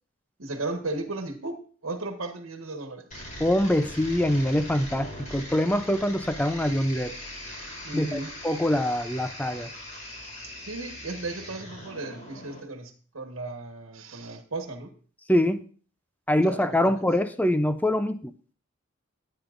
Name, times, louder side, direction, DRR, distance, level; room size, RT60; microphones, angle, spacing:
voice 1, 0.4-3.2 7.8-8.3 10.6-14.9 16.5-17.0, right 2 dB, 80° right, 5 dB, 1.4 m, -35 dB
sound 1, 3.1-12.6, left 1 dB, 40° left, 4.5 m, -41 dB
voice 2, 3.4-7.1 7.9-8.2 8.4-9.7 15.3-15.6 16.3-18.3, left 1 dB, 10° left, 11 dB, 0.5 m, -24 dB
15.5 x 8.8 x 2.5 m, 0.42 s
head